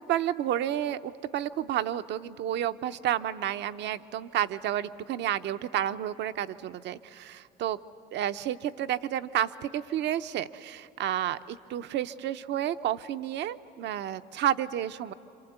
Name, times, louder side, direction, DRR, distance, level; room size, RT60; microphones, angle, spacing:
voice 1, 0.1-7.8 8.1-15.1, right 11 dB, 70° right, 11 dB, 0.8 m, -31 dB
27.0 x 26.5 x 8.1 m, 2.8 s
supercardioid pair, 75°, 19 cm